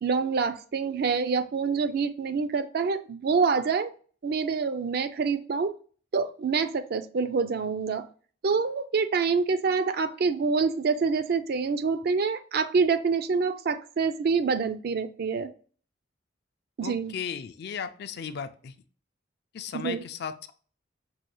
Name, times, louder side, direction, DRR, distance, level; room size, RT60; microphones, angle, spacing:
voice 1, 0.0-3.9 4.2-5.7 6.1-8.0 8.4-15.5 16.8-17.1 19.7-20.0, right 5 dB, 55° right, 10 dB, 0.4 m, -26 dB
voice 2, 16.8-18.7 19.5-20.5, left 7 dB, 55° left, 10 dB, 0.4 m, -36 dB
5.5 x 2.3 x 3.0 m, 0.42 s
head